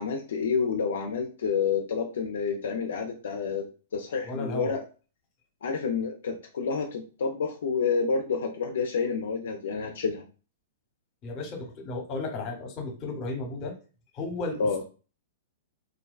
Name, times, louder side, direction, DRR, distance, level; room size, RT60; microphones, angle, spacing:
voice 1, 0.0-3.6 3.9-4.8 5.6-10.2 14.6-14.8, left 5 dB, 75° left, 3 dB, 0.3 m, -29 dB
voice 2, 4.2-4.7 11.2-13.7 14.1-14.8, left 2 dB, 35° left, 3 dB, 0.8 m, -34 dB
2.4 x 2.2 x 2.2 m, 0.36 s
hypercardioid pair, 120°, 0 cm